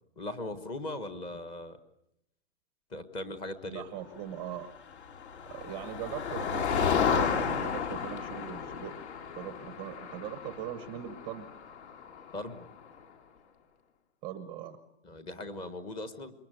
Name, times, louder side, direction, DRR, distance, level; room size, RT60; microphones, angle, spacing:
voice 1, 0.2-1.8 2.9-3.9 12.3-12.7 15.0-16.3, left 2 dB, 10° left, 10 dB, 1.3 m, -39 dB
voice 2, 3.7-4.7 5.5-9.0 9.3-11.5 14.2-14.8, right 10 dB, 10° right, 9 dB, 1.0 m, -40 dB
Motor vehicle (road), 4.9-12.7, left 6 dB, 55° left, 3.9 m, -33 dB
27.5 x 22.5 x 9.1 m, 0.80 s
hypercardioid pair, 160°, 39 cm